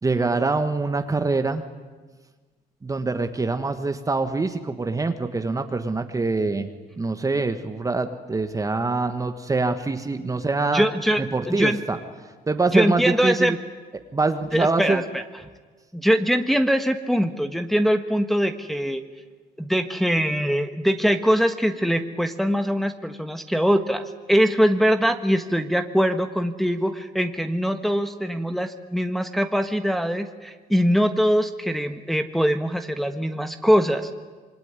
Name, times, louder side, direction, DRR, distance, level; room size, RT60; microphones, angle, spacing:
voice 1, 0.0-1.6 2.8-6.7 7.0-10.8 11.2-12.0 12.5-13.6 14.1-15.0, right 3 dB, 20° right, 7 dB, 1.5 m, -24 dB
voice 2, 10.7-11.8 12.7-13.5 14.5-15.2 15.9-19.0 19.6-34.1, equal, ahead, 6 dB, 1.4 m, -22 dB
26.5 x 22.5 x 9.8 m, 1.4 s
cardioid pair, 110°, 17 cm